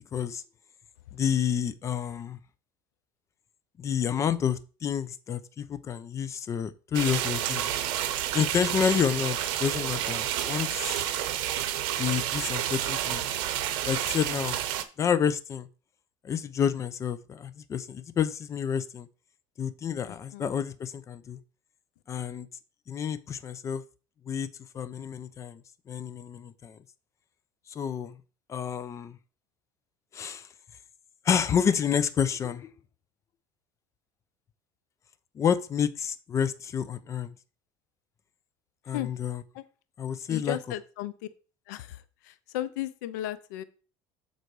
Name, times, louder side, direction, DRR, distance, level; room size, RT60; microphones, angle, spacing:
voice 1, 0.1-0.4 1.1-2.4 3.8-7.7 8.3-11.0 12.0-13.3 13.8-14.6 15.0-15.7 16.2-19.1 19.6-21.4 22.1-22.5 22.9-23.8 24.3-24.5 24.7-25.6 25.9-26.8 27.7-28.2 28.5-29.2 30.1-30.5 31.2-32.7 35.3-37.3 38.9-39.4 40.0-40.6, left 8 dB, 35° left, 13 dB, 0.6 m, -29 dB
sound 1, 6.9-14.8, right 11 dB, 70° right, 0.9 m, -30 dB
voice 2, 20.1-20.5 38.9-39.1 39.5-39.6 40.3-41.1 41.7-42.0 42.3-43.6, left 13 dB, 85° left, 13 dB, 0.6 m, -35 dB
7.9 x 4.1 x 4.7 m, 0.35 s
supercardioid pair, 115°, 9 cm